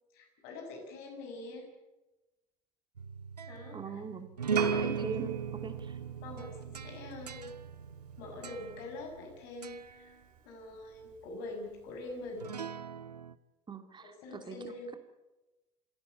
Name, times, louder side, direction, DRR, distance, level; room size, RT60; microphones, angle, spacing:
voice 1, 0.1-1.7 3.5-4.0 4.7-5.0 6.2-7.6 8.2-10.2 10.4-12.5 14.0-15.0, left 2 dB, 55° left, 2 dB, 6.5 m, -44 dB
sound 1, 3.0-9.3 9.6-10.0 12.4-13.3, right 6 dB, 80° right, 0.7 m, -37 dB
voice 2, 3.7-4.3 4.8-6.0 13.7-14.6, right 5 dB, 20° right, 8 dB, 2.5 m, -41 dB
Piano, 4.5-12.5, right 7 dB, 45° right, 6.3 m, -46 dB
27.0 x 16.5 x 8.4 m, 1.1 s
figure-of-eight pair, 65°, 20 cm